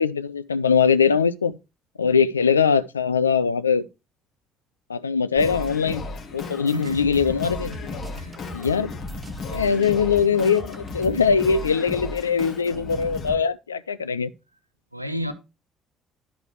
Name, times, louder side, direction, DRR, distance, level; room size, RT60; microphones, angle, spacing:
voice 1, 0.0-1.6 2.0-3.9 4.9-6.0 6.3-7.7 8.5-8.9 9.5-14.3, left 6 dB, 80° left, 0.4 m, -21 dB
Singing, 5.4-13.3, left 3 dB, 50° left, 2.1 m, -35 dB
sound 1, 6.7-11.3, left 1 dB, 25° right, 1.4 m, -42 dB
voice 2, 6.7-7.4 7.7-8.3 14.9-15.3, left 1 dB, 90° right, 0.7 m, -32 dB
11.0 x 4.8 x 4.5 m
figure-of-eight pair, 50°, 0 cm